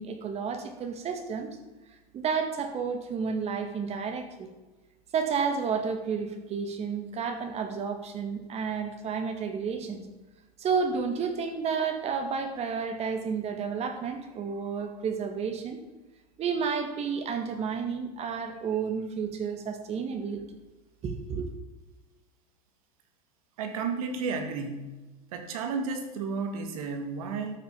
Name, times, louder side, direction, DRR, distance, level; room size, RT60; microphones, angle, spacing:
voice 1, 0.0-1.6 2.1-4.5 5.1-10.0 10.6-15.8 16.4-20.6 21.0-21.5, right 6 dB, 35° right, 7 dB, 2.2 m, -31 dB
voice 2, 23.6-25.0 25.3-27.6, right 4 dB, 80° right, 6 dB, 2.3 m, -32 dB
12.5 x 7.2 x 7.4 m, 1.2 s
supercardioid pair, 115°, 18 cm